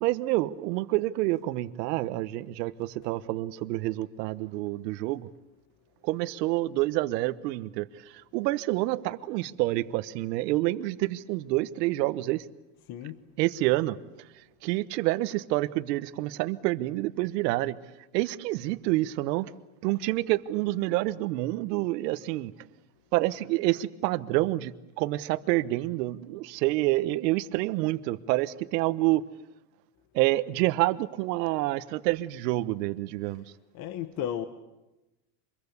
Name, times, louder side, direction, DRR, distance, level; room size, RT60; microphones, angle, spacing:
voice 1, 0.0-5.3 6.0-7.9 8.1-12.4 13.4-14.0 14.6-17.8 18.1-19.5 19.8-22.5 23.1-29.2 30.1-33.4, right 18 dB, 80° right, 15 dB, 1.3 m, -28 dB
voice 2, 12.9-13.2 33.7-34.5, left 10 dB, 50° left, 10 dB, 1.7 m, -33 dB
26.5 x 22.5 x 8.3 m, 0.98 s
supercardioid pair, 135°, 48 cm